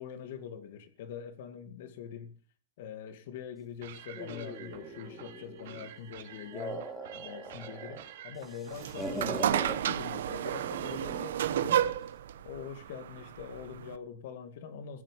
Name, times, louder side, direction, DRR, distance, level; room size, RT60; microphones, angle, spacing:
voice 1, 0.0-2.3 2.8-6.9 7.1-11.9 12.4-15.0, left 7 dB, 50° left, 2.2 m, -43 dB
sound 1, 3.8-11.2, right 11 dB, 55° right, 2.8 m, -50 dB
sound 2, 4.2-5.9 6.3-8.0 8.3-9.8 10.6-11.3, right 1 dB, 5° left, 1.8 m, -41 dB
sound 3, 8.7-14.0, right 10 dB, 75° right, 1.0 m, -31 dB
16.0 x 7.5 x 9.1 m
supercardioid pair, 175°, 0 cm